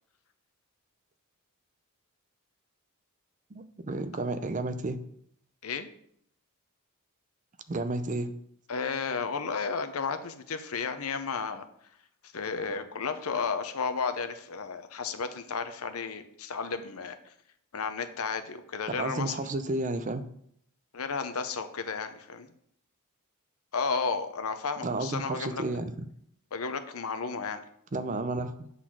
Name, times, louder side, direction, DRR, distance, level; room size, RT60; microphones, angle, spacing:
voice 1, 3.5-5.0 7.7-8.3 18.9-20.3 24.8-26.1 27.9-28.7, right 2 dB, 35° right, 11 dB, 0.5 m, -32 dB
voice 2, 8.7-11.6 12.3-17.2 17.7-19.5 20.9-22.5 23.7-25.6 26.5-27.6, left 5 dB, 70° left, 9 dB, 0.7 m, -33 dB
8.3 x 4.0 x 6.0 m, 0.69 s
head